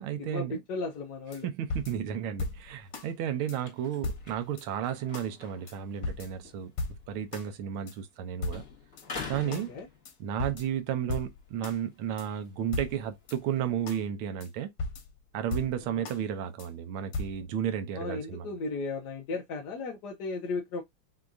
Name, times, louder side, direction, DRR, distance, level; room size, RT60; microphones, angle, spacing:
voice 1, 0.0-0.6 1.4-6.7 7.1-8.6 9.3-9.7 10.2-14.7 15.3-18.5, right 9 dB, 75° right, 1.6 m, -33 dB
voice 2, 0.7-1.5 9.5-9.9 15.9-16.0 18.0-20.8, left 3 dB, 60° left, 1.3 m, -35 dB
sound 1, 1.3-1.4 1.7-3.1 3.5-3.6 4.0-4.7 5.1-5.3 5.7-5.8 6.0-7.5 7.9-8.0 8.4-9.1 9.5-9.7 10.1-10.2 10.4-11.8 12.2-12.3 12.7-13.4 13.9-14.0 14.4-14.5 14.8-16.2 16.6-16.7 17.1-17.4, left 2 dB, 90° left, 2.0 m, -37 dB
sound 2, 2.6-8.2 8.5-10.5 11.0-14.1, left 4 dB, 35° left, 2.0 m, -47 dB
5.9 x 2.8 x 2.6 m
omnidirectional pair, 2.4 m